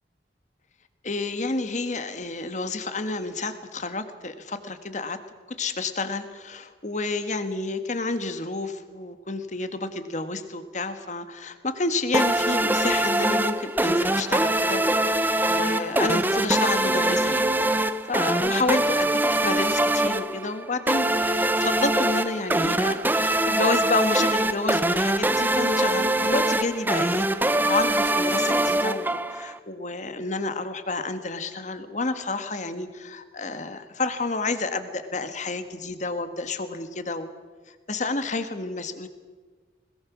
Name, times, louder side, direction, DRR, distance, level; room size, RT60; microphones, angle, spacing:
voice 1, 1.0-5.2 5.6-14.9 15.2-17.5 18.1-37.3 37.7-39.1, left 3 dB, 45° left, 9 dB, 1.6 m, -30 dB
sound 1, 12.1-29.6, right 1 dB, 10° right, 0.7 m, -23 dB
21.0 x 21.0 x 6.2 m, 1.4 s
head